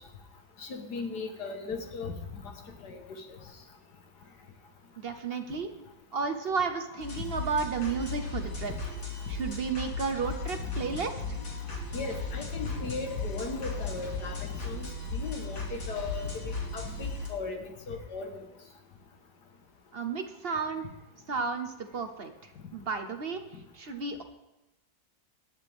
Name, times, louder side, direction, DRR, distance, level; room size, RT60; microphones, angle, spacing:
voice 1, 0.6-2.1 2.4-2.5 2.8-3.2 11.9-16.3 16.7-18.3, left 4 dB, 65° left, 4 dB, 2.0 m, -37 dB
voice 2, 5.0-8.7 9.3-11.4 19.9-20.8 21.3-23.4 23.7-24.2, right 5 dB, 45° right, 7 dB, 0.8 m, -33 dB
sound 1, 7.0-17.3, left 3 dB, 80° left, 3.1 m, -36 dB
19.0 x 11.0 x 3.6 m, 0.96 s
omnidirectional pair, 2.0 m